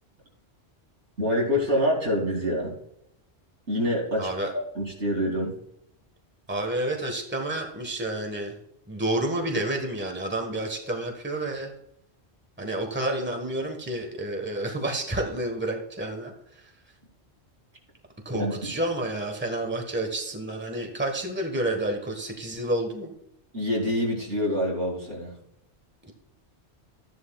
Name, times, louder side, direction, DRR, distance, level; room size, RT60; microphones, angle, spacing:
voice 1, 1.2-2.7 3.7-5.5 18.3-18.7 23.5-25.3, equal, 85° right, -3 dB, 3.6 m, -26 dB
voice 2, 4.2-4.5 6.5-8.5 8.9-11.7 12.6-16.3 16.6-16.7 18.2-23.1 26.1-26.2, right 1 dB, 10° right, 2 dB, 1.4 m, -29 dB
13.5 x 10.5 x 2.4 m, 0.77 s
omnidirectional pair, 1.1 m